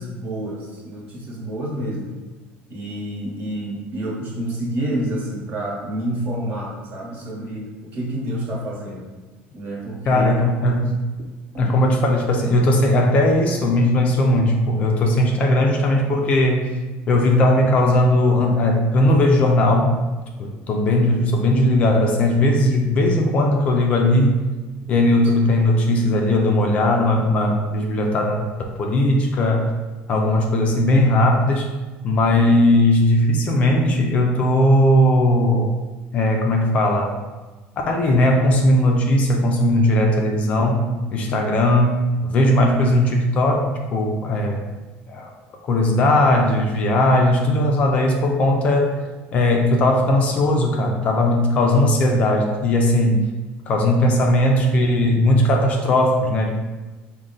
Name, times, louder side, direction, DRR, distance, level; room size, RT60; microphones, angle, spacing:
voice 1, 0.0-2.1 2.7-9.1 9.5-10.5 11.5-11.7, right 1 dB, 40° right, -3 dB, 1.1 m, -28 dB
voice 2, 10.1-10.9 11.6-16.7 17.1-20.0 20.4-24.4 24.9-28.5 28.8-29.7 30.1-31.7 32.0-35.7 36.1-37.2 37.9-44.6 45.1-45.3 45.6-49.0 49.3-53.2 53.7-56.5, left 1 dB, 30° left, 1 dB, 0.4 m, -18 dB
4.9 x 2.1 x 3.8 m, 1.2 s
cardioid pair, 175°, 5 cm